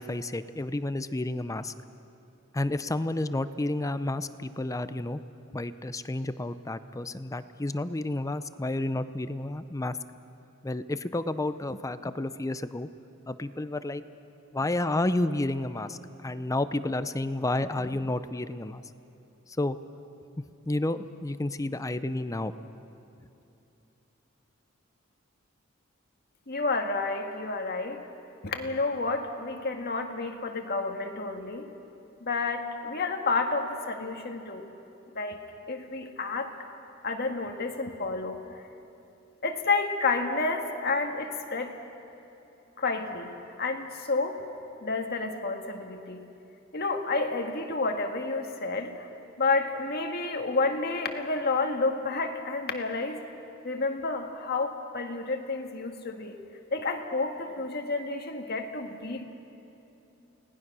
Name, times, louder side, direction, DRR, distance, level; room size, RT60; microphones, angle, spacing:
voice 1, 0.0-1.7 2.5-5.2 5.5-10.0 10.6-12.9 13.3-14.0 14.5-18.8 19.6-19.8 20.7-22.5, left 2 dB, 15° left, 12 dB, 0.5 m, -31 dB
voice 2, 26.5-28.0 28.4-31.7 32.2-34.7 35.1-36.5 37.0-38.4 39.4-41.7 42.8-43.3 43.6-44.4 44.8-46.2 46.7-48.9 49.4-53.2 53.6-56.4 56.7-59.2, left 3 dB, 50° left, 4 dB, 1.8 m, -30 dB
29.5 x 19.0 x 6.2 m, 2.9 s
head